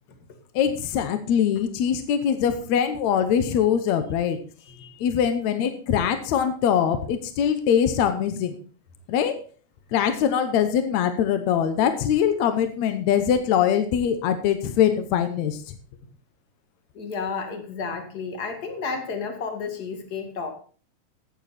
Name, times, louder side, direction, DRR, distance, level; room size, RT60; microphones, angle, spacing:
voice 1, 0.6-4.4 5.0-8.6 9.1-9.4 9.9-15.8, left 8 dB, 75° left, 9 dB, 2.2 m, -22 dB
voice 2, 4.7-5.1 16.9-20.5, left 5 dB, 35° left, 5 dB, 2.3 m, -32 dB
14.0 x 9.3 x 4.2 m, 0.42 s
omnidirectional pair, 3.4 m